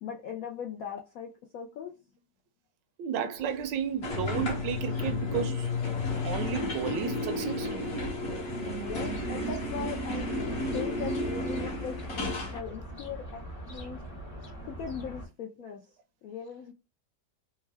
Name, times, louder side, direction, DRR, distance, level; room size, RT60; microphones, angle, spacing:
voice 1, 0.0-1.9 8.8-10.3 10.7-14.0 14.7-15.8 16.2-16.7, left 7 dB, 80° left, 0.7 m, -39 dB
voice 2, 3.0-5.7 6.2-7.8, right 8 dB, 75° right, 1.2 m, -33 dB
sound 1, 4.0-12.6, left 2 dB, 50° left, 0.9 m, -32 dB
sound 2, 8.8-15.3, right 1 dB, 25° left, 0.8 m, -42 dB
3.5 x 2.2 x 3.2 m
omnidirectional pair, 2.0 m